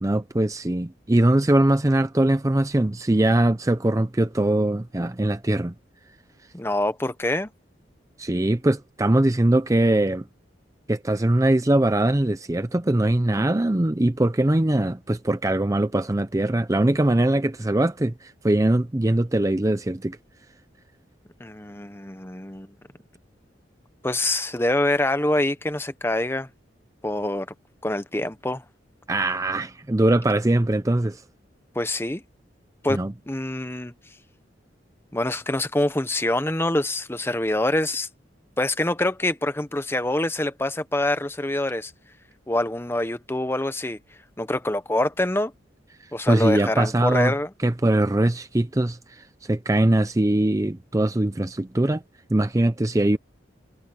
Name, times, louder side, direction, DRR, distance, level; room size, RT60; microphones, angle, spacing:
voice 1, 0.0-5.7 8.2-10.2 10.9-20.2 29.1-31.2 32.9-33.1 46.3-47.3 47.6-52.0 52.3-53.2, right 1 dB, 15° right, 0.6 m, -21 dB
voice 2, 6.5-7.5 21.4-22.7 24.0-26.5 27.0-27.5 27.8-28.6 31.7-32.2 32.8-33.0 33.3-33.9 35.1-38.1 38.6-41.9 42.5-44.0 44.4-45.5 46.1-47.5, left 1 dB, 15° left, 1.0 m, -25 dB
head